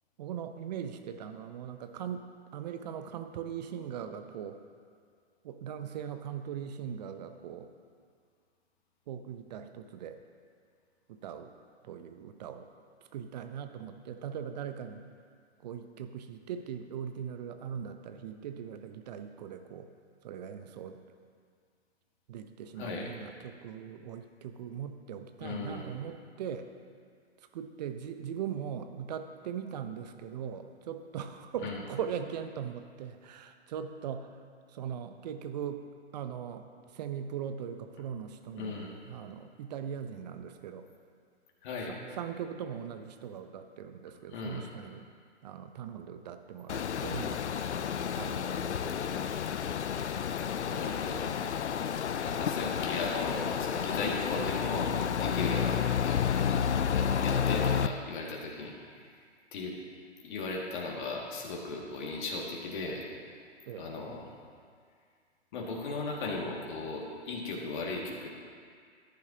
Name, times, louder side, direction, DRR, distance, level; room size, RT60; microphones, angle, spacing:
voice 1, 0.2-2.3 2.5-4.6 5.4-7.7 9.1-10.2 11.1-11.5 11.8-12.7 13.1-15.0 15.6-19.9 20.2-21.0 22.3-26.7 27.5-34.4 34.7-35.9 36.1-38.8 39.0-40.8 41.9-45.1 45.4-47.4 48.1-49.3 57.1-57.3 63.7-63.9, right 8 dB, 40° right, 8 dB, 0.7 m, -40 dB
voice 2, 22.8-23.1 25.4-25.8 31.6-31.8 38.5-38.9 41.6-42.0 44.3-44.7 50.6-51.3 52.2-56.4 56.9-58.7 59.0-59.1 59.5-59.8 60.2-63.1 63.8-64.2 65.5-68.3, left 3 dB, 45° left, -2 dB, 2.2 m, -37 dB
sound 1, 46.7-57.9, left 8 dB, 80° left, 0.5 m, -30 dB
14.5 x 10.5 x 2.9 m, 2.1 s
figure-of-eight pair, 125°, 34 cm